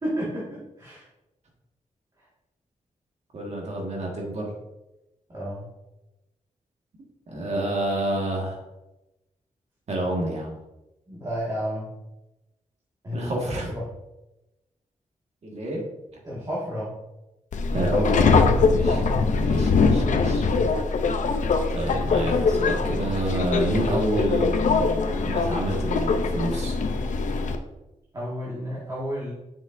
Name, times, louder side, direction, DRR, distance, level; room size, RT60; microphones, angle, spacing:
voice 1, 0.0-1.1 5.3-5.7 11.1-11.9 13.0-13.3 13.7-13.9 16.2-16.9 19.3-19.6 28.1-29.3, equal, 30° right, -7 dB, 1.8 m, -31 dB
voice 2, 3.3-4.5 7.3-8.6 9.9-10.5 13.1-13.7 15.4-15.8 17.7-19.0 19.4-20.4 21.7-26.8, right 1 dB, 55° right, -1 dB, 1.7 m, -28 dB
Subway metro underground, 17.5-27.6, left 4 dB, 70° left, 0.6 m, -22 dB
7.3 x 6.2 x 2.6 m, 0.96 s
wide cardioid pair, 115°, 13 cm